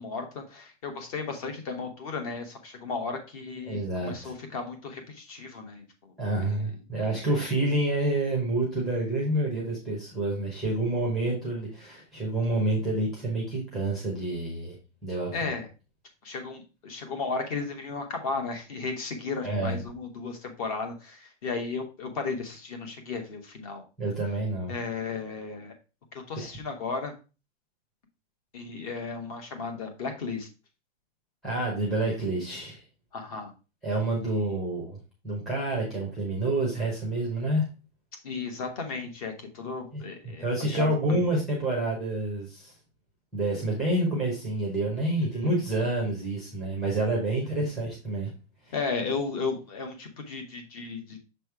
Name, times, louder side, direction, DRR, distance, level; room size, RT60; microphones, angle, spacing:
voice 1, 0.0-6.1 6.4-6.7 7.0-7.4 15.3-15.7 16.2-23.8 24.7-25.7 26.1-27.1 28.5-30.5 33.1-33.5 34.4-34.6 38.2-41.2 45.3-45.5 48.7-51.2, left 4 dB, 30° left, 5 dB, 1.3 m, -35 dB
voice 2, 3.7-4.1 6.2-14.7 15.0-15.3 19.4-19.8 24.0-24.8 26.3-26.5 31.4-32.8 33.8-35.0 35.2-37.7 39.9-40.0 40.4-42.7 43.3-48.3 48.6-48.7, right 2 dB, ahead, -3 dB, 0.8 m, -28 dB
6.6 x 3.4 x 4.6 m, 0.30 s
supercardioid pair, 175°, 35 cm